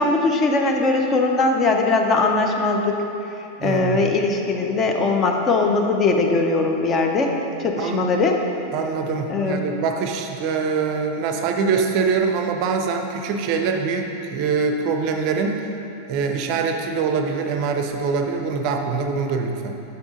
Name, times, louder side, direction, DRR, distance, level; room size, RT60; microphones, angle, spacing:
voice 1, 0.0-3.0 3.6-8.4 9.3-9.7, left 3 dB, 25° left, 2 dB, 0.6 m, -20 dB
voice 2, 3.6-4.0 7.8-8.1 8.7-15.6 16.1-19.7, right 5 dB, 45° right, 4 dB, 0.5 m, -24 dB
6.0 x 5.6 x 3.8 m, 2.9 s
figure-of-eight pair, 90°, 0 cm